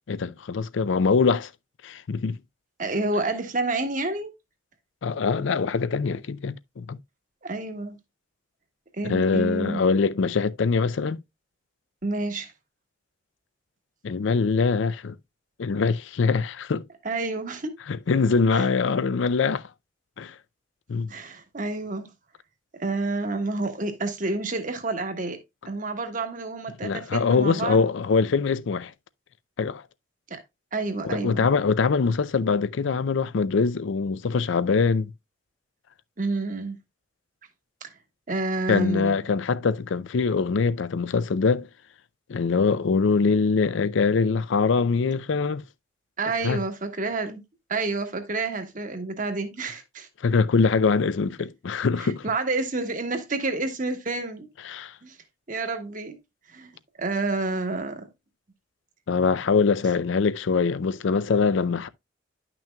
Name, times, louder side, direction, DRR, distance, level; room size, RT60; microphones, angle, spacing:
voice 1, 0.1-1.5 1.8-2.4 5.0-7.0 9.0-11.2 14.0-15.2 15.6-16.8 17.9-19.7 20.2-20.3 20.9-21.1 26.8-28.9 29.6-29.8 31.0-35.1 38.7-41.7 42.3-45.6 46.4-46.6 50.2-52.3 54.7-54.9 59.1-61.9, left 4 dB, 70° left, 0.4 m, -23 dB
voice 2, 2.8-4.3 7.4-8.0 8.9-9.8 12.0-12.5 17.0-17.7 18.5-18.7 21.1-22.1 22.8-25.4 25.7-27.8 30.3-30.4 30.7-31.5 36.2-36.8 37.8-37.9 38.3-39.2 46.2-47.4 47.7-50.1 52.0-54.5 55.0-55.2 55.5-56.2 56.5-56.7 57.0-58.1, right 3 dB, 40° right, 1.2 m, -29 dB
10.5 x 6.0 x 2.2 m
head